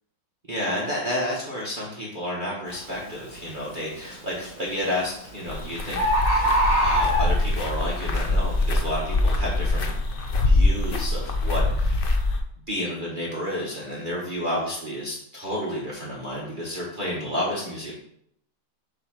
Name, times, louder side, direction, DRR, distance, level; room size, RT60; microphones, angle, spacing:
voice 1, 0.5-6.1 6.4-6.5 6.8-10.1 10.4-12.0 12.7-17.9, equal, 30° right, -5 dB, 1.4 m, -30 dB
Bird, 2.7-2.9 3.5-3.9 4.9-5.0 5.3-5.4 5.6-5.7 5.9-7.7 8.2-8.3, right 1 dB, 10° left, 1.6 m, -22 dB
sound 1, 5.5-12.4, left 2 dB, 80° left, 0.4 m, -24 dB
7.4 x 3.2 x 5.8 m, 0.70 s
omnidirectional pair, 2.0 m